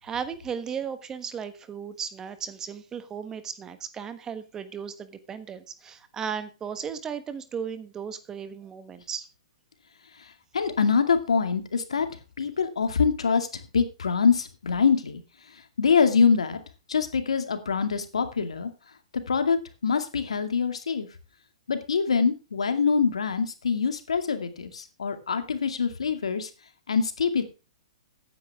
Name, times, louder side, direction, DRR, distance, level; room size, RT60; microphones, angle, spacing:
voice 1, 0.0-9.3, right 7 dB, 20° right, 11 dB, 1.3 m, -35 dB
voice 2, 10.5-12.1 12.4-15.2 15.8-16.6 16.9-18.7 19.3-21.1 21.7-26.5 26.9-27.4, left 5 dB, 80° left, 7 dB, 2.3 m, -24 dB
14.5 x 9.8 x 3.6 m, 0.31 s
hypercardioid pair, 130°, 3 cm